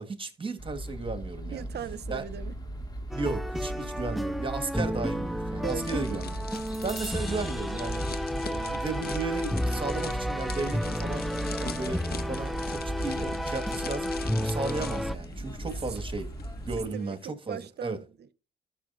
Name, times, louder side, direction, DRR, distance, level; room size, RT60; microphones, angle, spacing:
voice 1, 0.0-1.7 2.1-2.2 3.1-6.4 6.8-11.3 11.6-14.1 14.4-16.3 16.6-18.0, right 3 dB, 25° right, 1.8 m, -35 dB
sound 1, 0.6-16.9, right 1 dB, 20° left, 1.9 m, -37 dB
voice 2, 1.4-2.6 5.6-6.1 15.9-16.0 16.8-18.3, right 9 dB, 55° right, 0.8 m, -39 dB
sound 2, 3.1-15.2, equal, ahead, 0.3 m, -32 dB
sound 3, 5.6-16.5 16.7-17.0, left 6 dB, 50° left, 1.2 m, -43 dB
13.5 x 6.3 x 2.6 m
cardioid pair, 90°, 20 cm